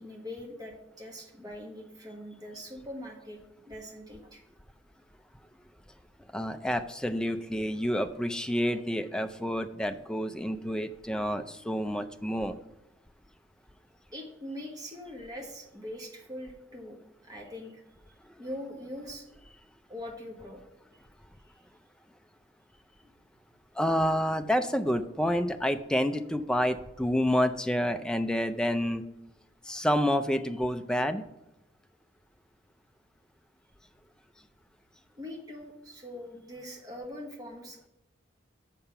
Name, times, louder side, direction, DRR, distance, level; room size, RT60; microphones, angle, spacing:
voice 1, 0.0-3.4 3.6-4.4 14.1-17.8 18.4-19.3 19.9-20.6 21.5-21.6 23.0-23.1 35.2-37.9, left 1 dB, 20° right, 0 dB, 1.3 m, -42 dB
voice 2, 6.3-12.6 23.7-29.0 29.6-31.2, equal, 5° left, 7 dB, 0.4 m, -28 dB
6.9 x 5.8 x 5.6 m, 0.91 s
head